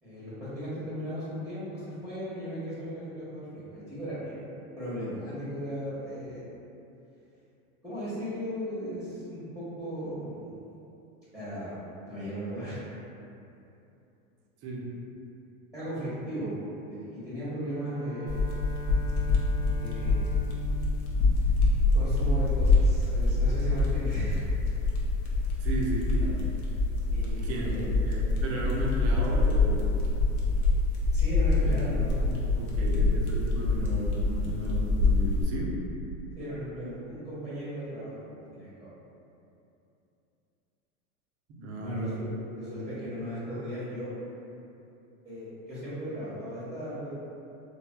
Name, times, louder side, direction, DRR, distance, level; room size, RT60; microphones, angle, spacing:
voice 1, 0.0-4.4 4.8-6.4 7.8-10.5 11.3-11.8 12.0-12.9 15.7-16.5 16.9-18.3 19.7-20.3 21.9-24.4 27.1-27.8 31.1-33.0 36.3-38.9 41.8-42.3 42.6-44.1 45.2-47.1, equal, ahead, -13 dB, 0.9 m, -37 dB
Bowed string instrument, 17.6-22.3, left 2 dB, 50° left, 0.7 m, -41 dB
sound 1, 18.3-35.4, left 3 dB, 85° left, 0.7 m, -26 dB
voice 2, 25.6-26.4 27.4-29.8 31.5-31.8 32.6-35.7 41.5-42.2, right 1 dB, 35° right, -2 dB, 0.5 m, -34 dB
3.2 x 2.3 x 2.2 m, 2.8 s
hypercardioid pair, 100°, 42 cm